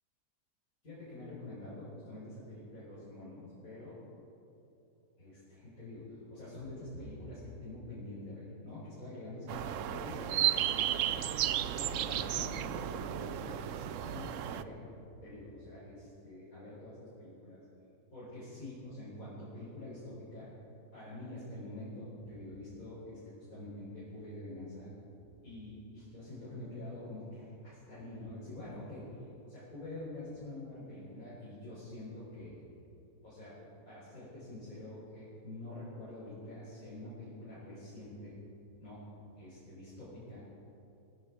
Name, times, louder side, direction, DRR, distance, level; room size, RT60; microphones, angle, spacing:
voice 1, 0.8-4.0 5.2-14.8 15.2-17.6 18.1-20.5 20.9-24.9 25.4-32.5 33.2-33.6 33.9-38.3 38.8-39.0 39.3-40.4, left 1 dB, 55° left, -11 dB, 5.5 m, -46 dB
sound 1, 9.5-14.6, right 11 dB, 65° right, 0.8 m, -33 dB
20.5 x 14.5 x 4.8 m, 2.9 s
omnidirectional pair, 1.7 m